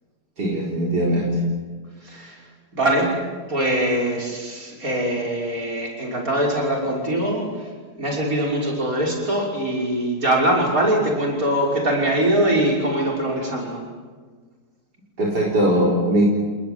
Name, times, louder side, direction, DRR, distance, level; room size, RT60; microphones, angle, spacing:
voice 1, 0.4-1.3 15.2-16.2, right 1 dB, 75° right, -3 dB, 4.9 m, -20 dB
voice 2, 2.0-2.4 2.7-3.1 3.5-7.7 8.0-13.8, right 1 dB, 55° right, -1 dB, 6.4 m, -22 dB
28.5 x 20.0 x 9.6 m, 1.5 s
omnidirectional pair, 1.8 m